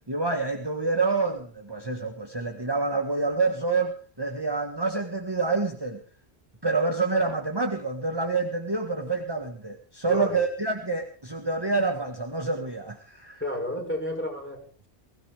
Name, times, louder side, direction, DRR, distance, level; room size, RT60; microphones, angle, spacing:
voice 1, 0.1-6.0 6.6-13.4, right 3 dB, 25° right, 4 dB, 1.7 m, -27 dB
voice 2, 10.1-10.4 13.4-14.9, left 1 dB, 10° left, 0 dB, 5.4 m, -32 dB
22.0 x 16.0 x 3.6 m, 0.40 s
omnidirectional pair, 1.1 m